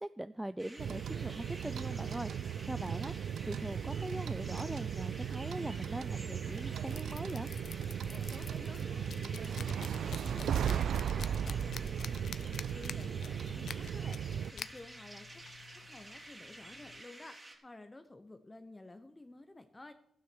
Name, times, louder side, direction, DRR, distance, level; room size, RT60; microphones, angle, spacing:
voice 1, 0.0-7.5, right 1 dB, 10° right, 14 dB, 0.4 m, -41 dB
sound 1, 0.6-17.6, right 2 dB, 25° right, 3.1 m, -51 dB
sound 2, 0.8-14.5, right 8 dB, 80° right, 0.4 m, -36 dB
sound 3, 4.4-17.0, left 7 dB, 70° left, 0.6 m, -50 dB
voice 2, 8.1-15.4 15.7-19.9, left 2 dB, 20° left, 8 dB, 0.9 m, -52 dB
12.0 x 9.5 x 6.2 m, 0.75 s
cardioid pair, 85°, 0 cm